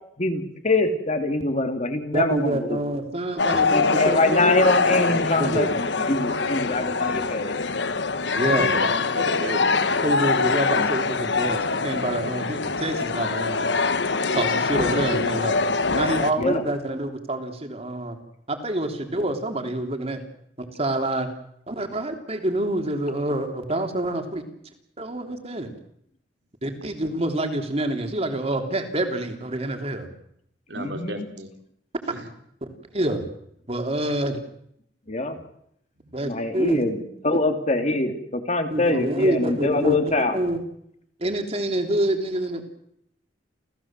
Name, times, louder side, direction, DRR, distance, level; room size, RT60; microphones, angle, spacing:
voice 1, 0.2-2.8 3.7-7.5 10.8-10.9 16.4-16.6 30.8-31.3 35.1-35.4 36.2-40.4, left 2 dB, 40° left, 6 dB, 2.8 m, -24 dB
voice 2, 2.1-4.4 5.4-5.7 8.3-8.7 10.0-13.6 14.3-15.6 15.9-18.2 18.5-20.2 20.6-21.3 21.7-24.4 25.0-25.7 26.6-30.1 32.9-33.2 33.7-34.4 36.1-36.8 38.7-40.0 40.3-40.6 41.2-42.6, right 1 dB, 35° right, 5 dB, 3.5 m, -27 dB
sound 1, 3.4-16.3, left 4 dB, 75° left, 1.3 m, -24 dB
voice 3, 8.4-9.9 30.7-31.5 32.1-32.2 36.0-36.2, right 1 dB, 75° right, 4 dB, 4.0 m, -32 dB
29.5 x 16.5 x 7.6 m, 0.72 s
head